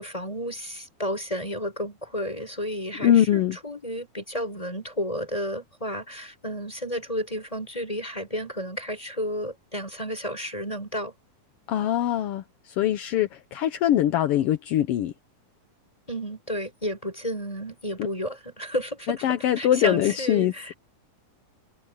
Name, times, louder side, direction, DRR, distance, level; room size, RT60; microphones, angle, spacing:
voice 1, 0.0-11.1 16.1-19.3 19.6-20.7, equal, 10° left, 6.1 m, -32 dB
voice 2, 3.0-3.6 11.7-15.1 19.1-20.7, left 11 dB, 75° left, 1.4 m, -23 dB
omnidirectional pair, 3.6 m